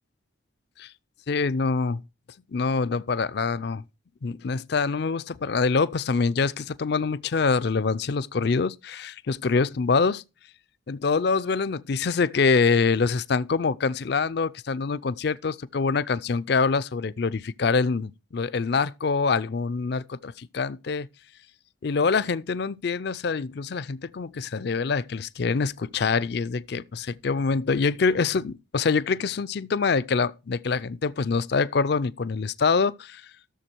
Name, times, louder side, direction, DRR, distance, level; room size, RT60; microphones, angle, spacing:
voice 1, 1.3-2.0 2.5-3.8 4.2-10.2 10.9-21.1 21.8-33.2, left 4 dB, 55° left, 0.4 m, -25 dB
13.0 x 6.9 x 4.5 m
head